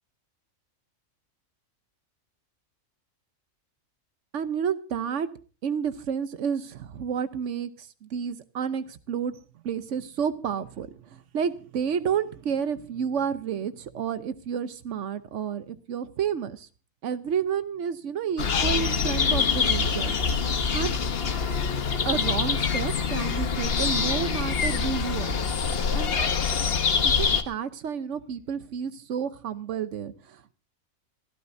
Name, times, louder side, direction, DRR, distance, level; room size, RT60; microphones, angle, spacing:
voice 1, 4.3-5.3 5.6-9.4 9.6-16.7 17.0-20.1 20.7-21.0 22.0-25.4 25.9-26.2 27.0-30.5, right 7 dB, 65° right, 12 dB, 1.2 m, -30 dB
sound 1, 18.4-27.4, left 5 dB, 50° left, 1.2 m, -25 dB
25.5 x 13.0 x 2.7 m, 0.36 s
omnidirectional pair, 1.4 m